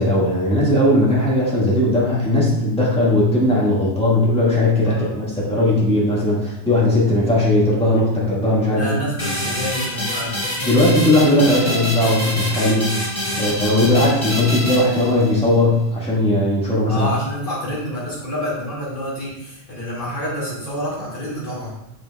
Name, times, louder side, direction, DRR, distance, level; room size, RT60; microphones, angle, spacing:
voice 1, 0.0-9.0 10.6-12.9 13.4-17.1, left 1 dB, 5° left, -7 dB, 1.8 m, -18 dB
voice 2, 4.8-5.5 8.7-10.4 13.3-13.7 16.9-21.8, equal, 50° left, -7 dB, 2.4 m, -28 dB
sound 1, 9.2-15.5, equal, 25° left, 1.5 m, -26 dB
6.9 x 6.3 x 2.3 m, 0.91 s
omnidirectional pair, 1.1 m